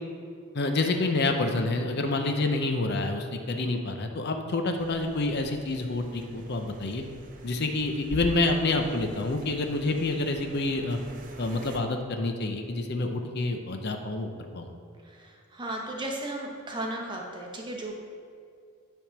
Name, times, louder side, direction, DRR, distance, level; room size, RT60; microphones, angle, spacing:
voice 1, 0.5-7.0 7.4-11.0 11.4-14.7, left 2 dB, 50° left, 5 dB, 0.6 m, -28 dB
sound 1, 4.8-11.8, right 1 dB, 40° right, 0.6 m, -45 dB
voice 2, 15.0-17.9, right 1 dB, 20° right, 0 dB, 1.0 m, -35 dB
9.9 x 3.6 x 5.9 m, 2.3 s
head